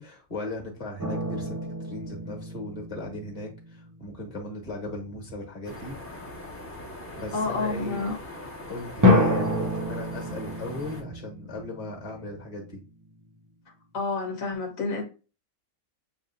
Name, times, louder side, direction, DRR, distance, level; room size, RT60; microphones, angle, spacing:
voice 1, 0.0-6.0 7.1-8.1 8.7-12.8, left 2 dB, 30° left, 1.5 m, -37 dB
sound 1, 1.0-4.1 9.0-12.6, left 2 dB, 30° right, 0.3 m, -27 dB
sound 2, 5.6-11.0, left 1 dB, 10° left, 0.8 m, -41 dB
voice 2, 7.3-8.2 13.9-15.0, left 3 dB, 85° left, 1.6 m, -29 dB
7.1 x 2.7 x 2.5 m
omnidirectional pair, 1.4 m